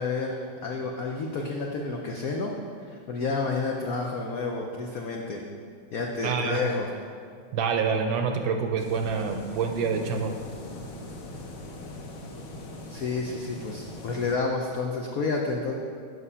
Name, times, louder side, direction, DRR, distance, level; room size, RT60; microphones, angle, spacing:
voice 1, 0.0-2.5 2.8-5.4 5.9-6.9 12.9-15.8, left 3 dB, 85° left, 1 dB, 0.7 m, -30 dB
voice 2, 6.2-6.6 7.5-10.3, right 5 dB, 75° right, 5 dB, 1.2 m, -27 dB
sound 1, 8.8-14.4, left 1 dB, 60° left, 0.9 m, -41 dB
7.8 x 6.0 x 5.5 m, 2.2 s
omnidirectional pair, 2.4 m